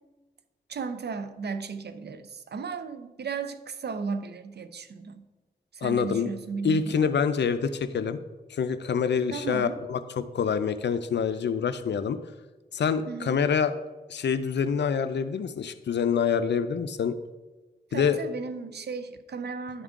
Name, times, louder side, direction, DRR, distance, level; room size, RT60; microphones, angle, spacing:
voice 1, 0.7-5.2 5.7-7.1 9.3-9.8 13.1-13.4 17.9-19.8, right 5 dB, 75° right, 11 dB, 0.5 m, -35 dB
voice 2, 5.8-6.3 6.6-8.2 8.5-12.2 12.7-13.7 14.1-17.1 17.9-18.2, left 6 dB, 85° left, 12 dB, 0.4 m, -26 dB
11.0 x 3.6 x 3.6 m, 1.2 s
cardioid pair, 50°, 18 cm